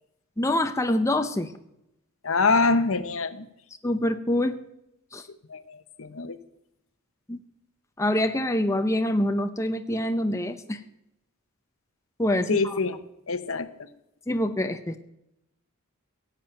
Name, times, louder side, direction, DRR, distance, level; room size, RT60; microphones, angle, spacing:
voice 1, 0.4-1.5 3.8-4.6 5.1-5.2 7.3-7.4 8.0-10.8 12.2-12.5 14.3-15.0, left 1 dB, 15° left, 7 dB, 0.6 m, -25 dB
voice 2, 2.2-3.5 5.5-6.4 12.5-13.0 13.3-13.9, left 3 dB, 65° left, 12 dB, 1.0 m, -25 dB
17.0 x 7.4 x 8.8 m, 0.84 s
head